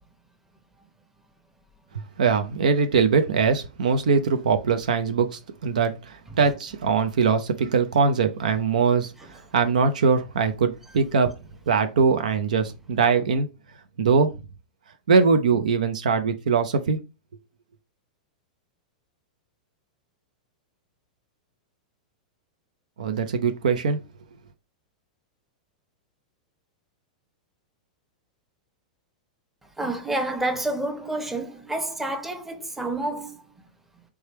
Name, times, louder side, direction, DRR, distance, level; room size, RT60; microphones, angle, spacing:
voice 1, 2.2-9.1 9.5-11.3 11.7-13.5 14.0-14.3 15.1-17.0 23.0-24.0, right 5 dB, 75° right, 0.5 m, -22 dB
voice 2, 29.8-33.5, right 2 dB, 5° right, 0.8 m, -29 dB
3.4 x 3.2 x 3.0 m
hypercardioid pair, 105°, 4 cm